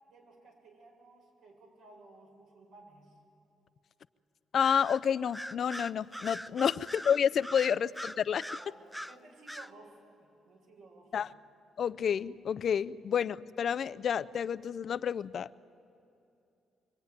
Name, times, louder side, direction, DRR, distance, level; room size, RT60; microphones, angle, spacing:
voice 1, 0.1-3.2 7.7-7.8 8.6-11.3, right 2 dB, 75° right, 1 dB, 7.3 m, -56 dB
voice 2, 4.5-8.5 11.1-11.3 11.8-15.6, left 8 dB, 55° left, 16 dB, 0.6 m, -30 dB
Bird vocalization bird call bird song, 4.6-5.0 5.3-9.2 9.5-9.7, equal, ahead, 0.7 m, -41 dB
24.5 x 24.5 x 9.7 m, 2.7 s
cardioid pair, 90°, 0 cm